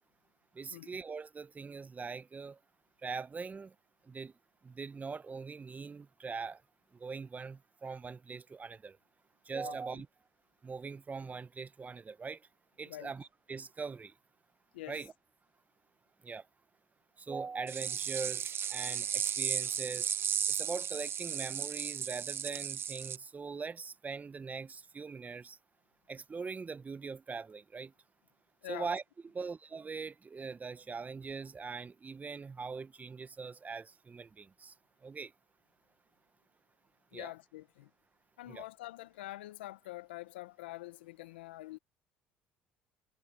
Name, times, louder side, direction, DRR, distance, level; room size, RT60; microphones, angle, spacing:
voice 1, 0.5-2.6 3.0-3.7 4.0-4.3 4.6-6.6 6.9-9.0 9.4-10.1 10.6-12.5 12.8-14.1 14.9-15.1 16.2-16.5 17.2-20.1 20.5-25.6 26.1-27.9 28.7-29.0 29.3-34.7 35.0-35.3 37.1-37.3 38.5-38.6, right 4 dB, 30° right, 1.1 m, -42 dB
voice 2, 9.6-10.0 12.9-13.1 14.7-15.0 28.6-28.9 37.1-37.9 38.4-41.8, left 17 dB, 85° left, 1.2 m, -46 dB
sound 1, 17.7-23.2, right 8 dB, 45° right, 1.3 m, -35 dB
hypercardioid pair, 65°, 6 cm